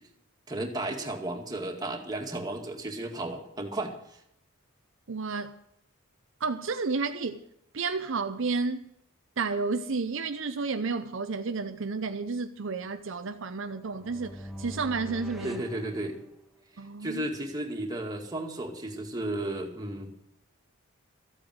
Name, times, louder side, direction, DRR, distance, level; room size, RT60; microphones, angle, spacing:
voice 1, 0.5-3.9 15.4-16.2 17.0-20.1, right 1 dB, 20° right, 2.1 m, -34 dB
voice 2, 5.1-5.6 6.4-7.4 7.7-8.9 9.4-15.6 16.8-17.2, right 4 dB, 60° right, 0.7 m, -31 dB
sound 1, 13.7-16.7, equal, ahead, 1.3 m, -44 dB
14.0 x 8.8 x 7.7 m
head